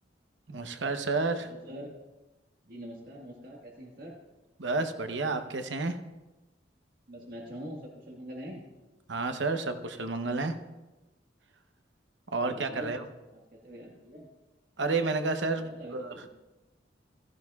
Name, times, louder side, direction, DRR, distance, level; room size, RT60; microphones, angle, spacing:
voice 1, 0.5-1.5 4.6-6.0 9.1-10.6 12.3-13.0 14.8-16.1, right 3 dB, 85° right, 7 dB, 0.9 m, -30 dB
voice 2, 1.4-2.0 2.6-4.2 7.1-8.6 12.4-13.0 13.3-14.3 15.6-16.3, equal, 55° right, -2 dB, 1.7 m, -44 dB
15.5 x 14.5 x 2.4 m, 1.1 s
head